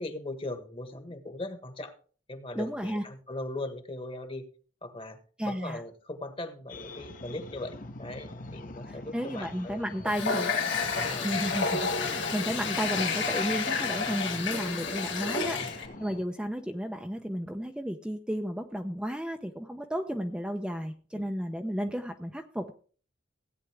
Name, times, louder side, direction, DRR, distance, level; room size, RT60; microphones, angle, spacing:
voice 1, 0.0-2.0 2.3-4.4 4.8-5.2 5.4-10.3 10.9-11.3 15.5-15.8 21.1-21.2, left 2 dB, 30° left, 8 dB, 1.5 m, -39 dB
voice 2, 2.5-3.0 5.4-5.8 8.9-10.5 11.2-22.7, equal, 5° right, 4 dB, 0.7 m, -33 dB
sound 1, 6.7-16.2, left 1 dB, 45° left, 1.1 m, -43 dB
Water tap faucet, 10.1-15.9, left 5 dB, 75° left, 2.3 m, -30 dB
16.5 x 9.1 x 3.5 m, 0.40 s
head